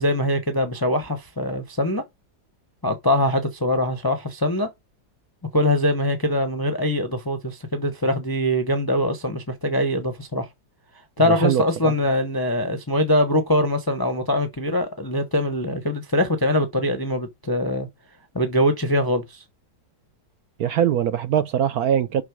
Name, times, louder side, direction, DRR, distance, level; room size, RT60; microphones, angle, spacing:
voice 1, 0.0-2.0 2.8-4.7 5.5-10.5 11.2-17.9 18.3-19.4, left 1 dB, 20° left, 0.6 m, -23 dB
voice 2, 11.2-11.9 20.6-22.2, right 9 dB, 65° right, 1.0 m, -22 dB
7.3 x 5.8 x 4.7 m
omnidirectional pair, 1.9 m